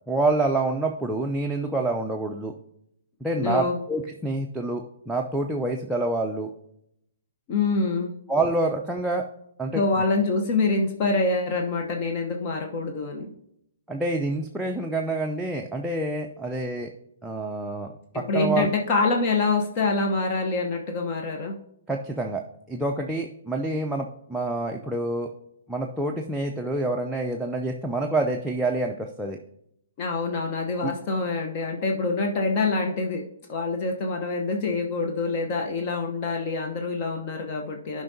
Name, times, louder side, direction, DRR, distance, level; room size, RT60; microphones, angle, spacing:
voice 1, 0.1-2.5 3.2-6.5 8.3-9.2 9.6-9.8 13.9-16.9 17.2-17.9 18.1-18.7 21.9-22.4 22.7-25.3 25.7-29.4 30.8-30.9, right 2 dB, 5° right, 0 dB, 0.5 m, -27 dB
voice 2, 3.4-3.7 7.5-8.1 9.7-13.3 18.3-21.6 30.0-33.2 33.5-38.0, left 3 dB, 40° left, 2 dB, 0.9 m, -25 dB
12.0 x 5.2 x 2.7 m, 0.76 s
figure-of-eight pair, 120°, 0 cm